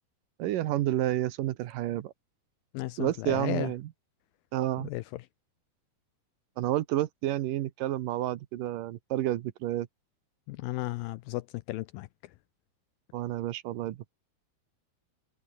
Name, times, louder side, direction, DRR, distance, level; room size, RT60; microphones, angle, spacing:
voice 1, 0.4-2.1 3.0-3.8 4.5-4.9 6.6-9.9 13.1-14.0, right 14 dB, 70° right, 2.3 m, -30 dB
voice 2, 2.7-3.7 4.8-5.2 10.5-12.1, left 19 dB, 80° left, 2.1 m, -34 dB
omnidirectional pair, 4.7 m